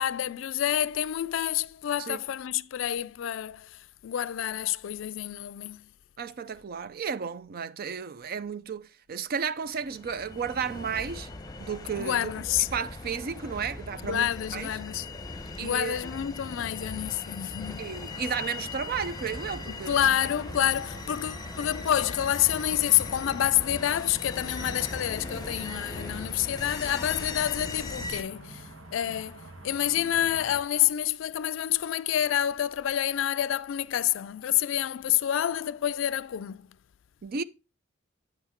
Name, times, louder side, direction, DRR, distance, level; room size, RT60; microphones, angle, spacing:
voice 1, 0.0-3.7 4.0-5.9 12.0-12.7 14.0-15.1 15.6-17.9 19.9-36.7, left 11 dB, 70° left, 0.3 m, -28 dB
voice 2, 6.2-11.3 11.6-12.5 12.7-14.7 15.6-16.0 17.8-20.3 37.2-37.4, right 6 dB, 50° right, 0.4 m, -33 dB
sound 1, 9.7-28.2, left 2 dB, 20° left, 0.9 m, -39 dB
sound 2, 18.1-30.6, right 2 dB, 85° right, 1.4 m, -48 dB
8.8 x 5.7 x 4.3 m
head